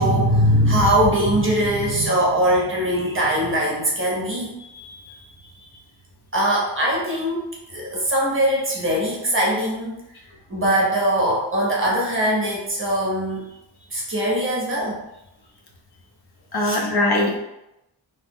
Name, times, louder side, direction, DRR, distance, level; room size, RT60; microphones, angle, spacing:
voice 1, 0.0-4.5 6.3-9.9 10.5-13.5 13.9-15.0 16.6-16.8, right 1 dB, 25° right, -3 dB, 0.6 m, -21 dB
voice 2, 4.6-5.2 16.5-17.4, left 1 dB, 55° left, 1 dB, 0.6 m, -23 dB
2.7 x 2.0 x 3.4 m, 0.88 s
wide cardioid pair, 160°, 47 cm